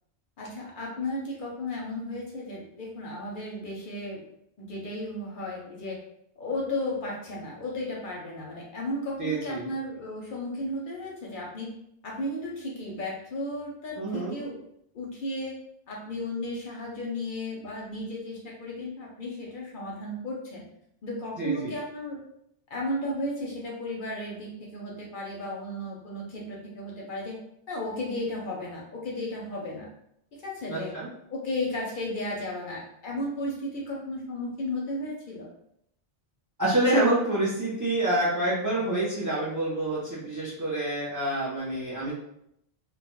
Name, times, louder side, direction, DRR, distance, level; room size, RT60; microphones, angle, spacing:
voice 1, 0.4-4.2 4.6-6.0 6.4-11.7 12.0-14.6 14.9-15.6 15.9-20.6 21.0-22.2 22.7-27.4 27.7-29.9 30.3-30.9 31.3-35.5, left 1 dB, 60° left, -2 dB, 0.6 m, -34 dB
voice 2, 9.2-9.7 14.0-14.3 21.4-21.7 30.7-31.1 36.6-42.1, right 1 dB, 35° right, -5 dB, 0.3 m, -27 dB
2.2 x 2.0 x 2.9 m, 0.74 s
omnidirectional pair, 1.1 m